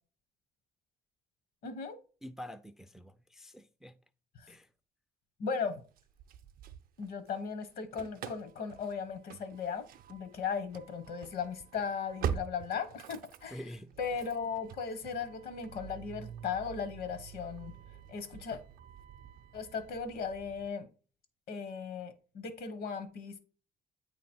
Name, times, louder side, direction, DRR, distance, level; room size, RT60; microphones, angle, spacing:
voice 1, 1.6-2.0 4.4-4.5 5.4-5.8 7.0-13.6 14.0-17.7 18.1-18.6 19.5-20.9 21.5-23.4, left 6 dB, 65° left, 1.1 m, -37 dB
voice 2, 2.2-4.0 4.5-4.7 13.5-13.9, equal, ahead, 0.3 m, -46 dB
Engine starting / Slam, 6.0-7.4 7.6-20.7, right 8 dB, 60° right, 0.5 m, -45 dB
8.6 x 3.1 x 4.3 m
cardioid pair, 110°, 17 cm